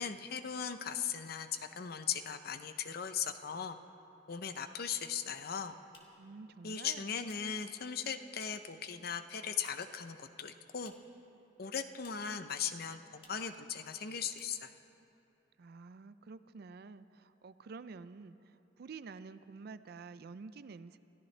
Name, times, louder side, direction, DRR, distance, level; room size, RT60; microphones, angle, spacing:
voice 1, 0.0-3.8 4.3-5.8 6.6-10.9 11.6-14.7, left 7 dB, 55° left, 9 dB, 0.7 m, -38 dB
sound 1, 5.9-8.8 9.1-10.1 10.3-11.2 11.5-12.4 12.7-12.8 13.1-13.5 13.9-14.0 14.3-14.9, left 3 dB, 30° left, 1.7 m, -64 dB
voice 2, 6.2-7.2 15.6-21.0, right 4 dB, 60° right, 14 dB, 0.4 m, -49 dB
27.0 x 14.5 x 3.3 m, 2.8 s
head